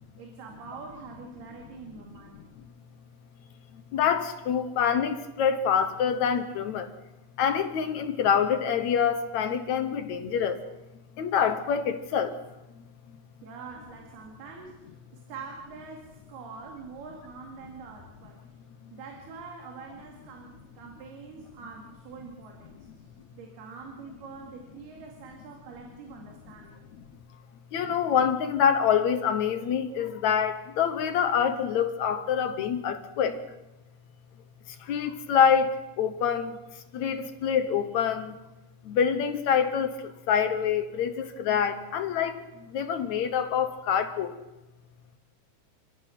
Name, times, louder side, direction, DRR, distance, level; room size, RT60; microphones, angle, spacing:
voice 1, 0.2-2.4 4.6-4.7 13.4-18.4 18.9-22.9 23.3-26.9, right 5 dB, 90° right, 1 dB, 4.3 m, -45 dB
voice 2, 3.9-6.9 7.4-10.6 11.2-12.3 27.7-33.4 34.9-36.5 36.9-38.3 38.9-40.0 40.3-42.4 42.7-44.3, left 7 dB, 65° left, 9 dB, 2.0 m, -26 dB
29.5 x 16.0 x 6.1 m, 1.0 s
omnidirectional pair, 4.4 m